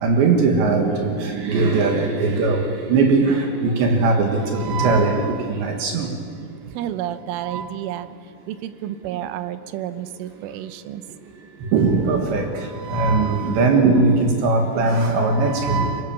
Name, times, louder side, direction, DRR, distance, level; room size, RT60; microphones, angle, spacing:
voice 1, 0.0-6.1 7.5-7.6 11.7-12.5 12.9-16.0, right 3 dB, 70° right, 3 dB, 3.8 m, -19 dB
voice 2, 6.7-8.1 8.5-11.0, right 12 dB, 85° right, 11 dB, 3.5 m, -30 dB
25.0 x 23.5 x 7.2 m, 2.2 s
omnidirectional pair, 5.6 m